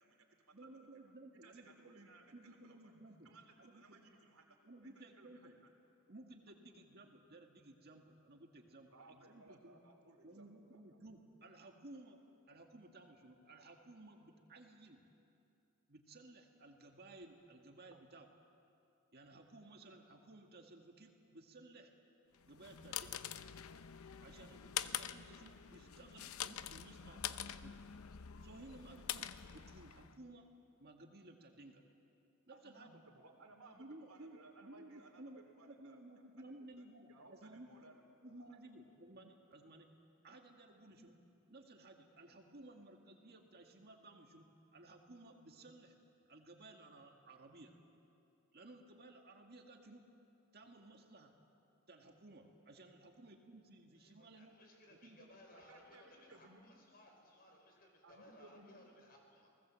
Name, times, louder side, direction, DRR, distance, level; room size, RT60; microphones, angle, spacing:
voice 1, 0.0-0.7 1.0-1.1 1.4-2.9 3.2-4.6 4.8-5.5 8.9-10.8 32.5-36.0 36.4-36.5 36.8-37.9 38.3-38.6 40.9-41.0 50.6-50.7 53.0-53.2 55.5-56.7 58.0-58.7, right 2 dB, 75° right, 4 dB, 3.2 m, -62 dB
voice 2, 0.5-3.3 3.6-4.0 4.6-5.5 6.1-9.8 10.2-12.2 12.5-15.0 15.9-18.3 19.1-21.9 22.5-23.3 24.2-27.8 28.4-30.4 30.8-31.8 32.5-33.0 33.7-37.7 38.2-39.9 40.2-41.1 41.5-44.5 44.7-45.9 46.3-47.7 48.5-50.0 50.5-51.3 51.9-54.5 55.0-55.3, right 2 dB, 50° right, 3 dB, 1.9 m, -57 dB
sound 1, 22.4-30.2, left 10 dB, 80° left, 0.7 m, -45 dB
voice 3, 53.9-59.5, left 1 dB, 45° left, 2 dB, 5.0 m, -62 dB
30.0 x 19.0 x 7.6 m, 2.6 s
head